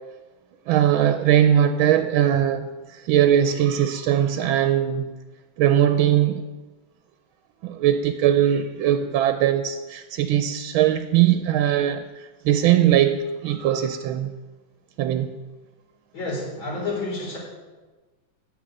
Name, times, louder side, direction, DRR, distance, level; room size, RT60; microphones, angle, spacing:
voice 1, 0.7-5.1 5.6-6.5 7.6-14.3 15.0-15.4, right 10 dB, 90° right, 9 dB, 1.5 m, -20 dB
voice 2, 16.1-17.4, left 2 dB, 80° left, -3 dB, 5.0 m, -29 dB
10.5 x 7.0 x 8.9 m, 1.2 s
omnidirectional pair, 2.2 m